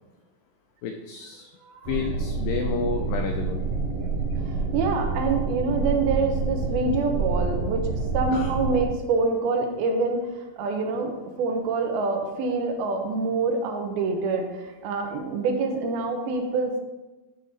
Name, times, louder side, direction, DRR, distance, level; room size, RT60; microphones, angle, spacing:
voice 1, 0.8-1.5 1.9-3.6 8.3-8.5, left 6 dB, 90° left, 4 dB, 1.9 m, -30 dB
sound 1, 1.8-8.9, right 4 dB, 50° right, 2.5 m, -27 dB
voice 2, 4.4-7.9 8.1-10.2 10.6-11.1 11.4-16.8, right 3 dB, 80° right, 3 dB, 2.6 m, -26 dB
9.9 x 3.7 x 4.0 m, 1.1 s
omnidirectional pair, 4.5 m